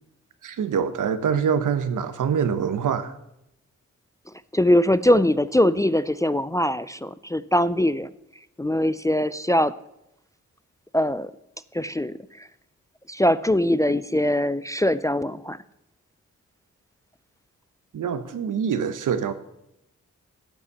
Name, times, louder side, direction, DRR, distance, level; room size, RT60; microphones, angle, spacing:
voice 1, 0.4-3.1 17.9-19.3, right 7 dB, 85° right, 0.9 m, -25 dB
voice 2, 4.5-8.1 8.6-9.7 10.9-11.3 11.7-12.5 13.1-15.6, left 1 dB, 10° left, 0.3 m, -22 dB
10.0 x 7.1 x 7.1 m
cardioid pair, 80°, 30 cm